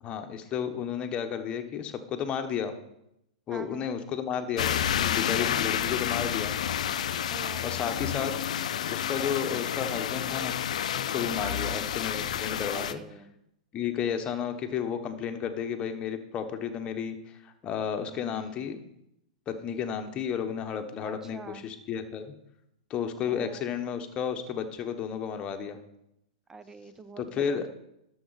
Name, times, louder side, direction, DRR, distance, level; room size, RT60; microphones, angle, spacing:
voice 1, 0.0-2.7 3.5-6.6 6.8-7.0 7.6-8.3 8.9-10.5 10.9-13.0 13.7-18.8 19.5-22.3 22.9-25.8 27.2-27.7, left 8 dB, 25° left, 6 dB, 1.2 m, -32 dB
voice 2, 3.5-3.9 5.4-5.5 5.8-6.0 7.3-8.0 11.4-11.8 12.7-13.4 18.1-18.7 21.0-21.6 23.3-23.8 26.5-27.7, right 4 dB, 10° right, 12 dB, 0.7 m, -45 dB
sound 1, 4.6-12.9, left 9 dB, 70° left, 0.5 m, -30 dB
11.5 x 7.0 x 4.2 m, 0.82 s
hypercardioid pair, 120°, 4 cm